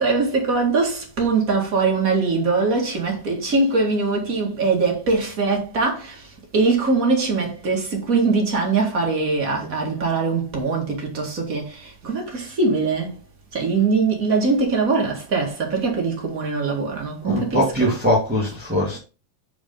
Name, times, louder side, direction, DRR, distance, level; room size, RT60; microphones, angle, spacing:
voice 1, 0.0-13.2 13.5-18.0, right 4 dB, 30° right, 1.8 m, -22 dB
voice 2, 17.2-19.0, equal, 5° right, 1.7 m, -21 dB
8.1 x 5.0 x 3.8 m
omnidirectional pair, 4.0 m